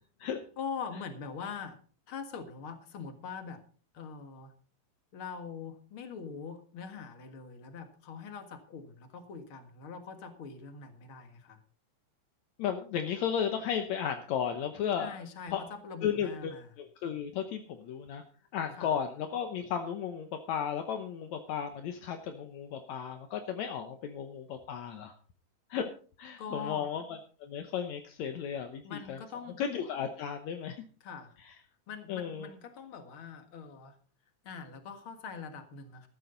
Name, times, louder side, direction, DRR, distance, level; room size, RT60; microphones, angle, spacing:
voice 1, 0.6-1.8 2.1-3.6 3.9-4.5 5.1-11.6 15.0-16.7 18.7-18.9 26.4-26.9 28.8-29.6 31.0-31.4 31.9-34.0 34.4-36.1, left 5 dB, 50° left, 7 dB, 2.3 m, -43 dB
voice 2, 12.6-15.2 15.5-15.6 16.0-18.2 18.5-25.1 25.7-25.9 26.2-29.2 29.6-30.8 32.1-32.5, left 8 dB, 75° left, 6 dB, 2.2 m, -34 dB
14.0 x 13.0 x 3.9 m, 0.39 s
omnidirectional pair, 3.4 m